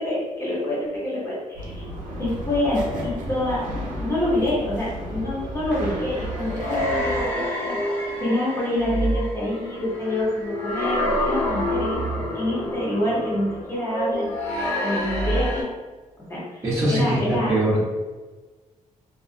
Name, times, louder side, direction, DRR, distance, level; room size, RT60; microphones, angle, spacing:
voice 1, 0.0-1.8 2.2-3.6 4.0-7.8 8.2-14.3 14.8-15.7 16.3-16.6 16.9-17.5, left 1 dB, 20° left, -7 dB, 0.9 m, -26 dB
sound 1, 1.5-7.3, equal, 90° right, 0.5 m, -33 dB
sound 2, 5.6-15.6, equal, 70° left, 1.0 m, -27 dB
voice 2, 16.6-17.8, right 1 dB, 20° right, -9 dB, 0.7 m, -22 dB
2.4 x 2.2 x 2.5 m, 1.3 s
wide cardioid pair, 165°, 13 cm